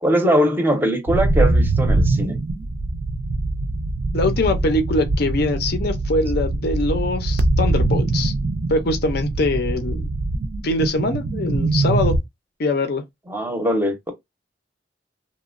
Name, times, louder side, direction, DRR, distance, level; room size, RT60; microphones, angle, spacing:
voice 1, 0.0-2.4 13.3-14.1, equal, 10° right, 0.6 m, -21 dB
sound 1, 1.1-12.2, right 2 dB, 60° right, 0.4 m, -22 dB
voice 2, 4.1-8.3 8.7-10.1 10.6-12.2 12.6-13.0, left 2 dB, 60° left, 0.5 m, -22 dB
2.9 x 2.1 x 2.4 m
head